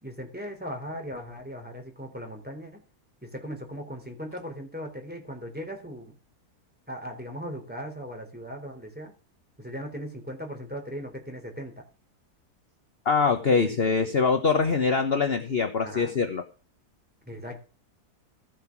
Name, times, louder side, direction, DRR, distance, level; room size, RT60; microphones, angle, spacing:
voice 1, 0.0-2.8 3.2-6.1 6.9-9.1 9.6-11.8 13.5-13.9 15.8-16.2 17.3-17.6, equal, 5° right, 2 dB, 3.6 m, -38 dB
voice 2, 13.0-16.4, left 5 dB, 40° left, 6 dB, 1.3 m, -23 dB
15.5 x 5.7 x 6.0 m, 0.37 s
omnidirectional pair, 1.7 m